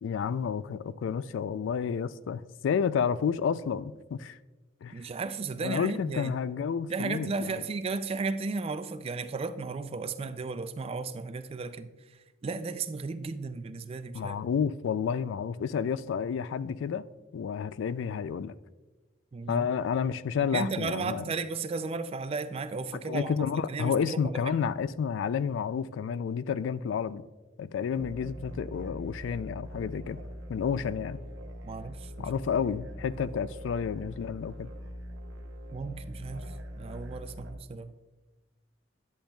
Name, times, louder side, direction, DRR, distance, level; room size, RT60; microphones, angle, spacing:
voice 1, 0.0-4.4 4.8-5.0 5.6-7.6 14.1-17.0 17.3-18.6 19.5-21.3 22.9-27.2 27.6-30.2 30.5-31.2 32.2-34.7, left 7 dB, 75° left, 0.3 m, -30 dB
voice 2, 4.9-6.3 6.9-11.9 12.4-14.4 19.3-19.7 20.5-24.4 31.6-32.3 35.7-37.9, right 4 dB, 30° right, 0.3 m, -34 dB
sound 1, 27.9-37.5, equal, 70° right, 0.9 m, -42 dB
10.0 x 8.5 x 2.3 m
head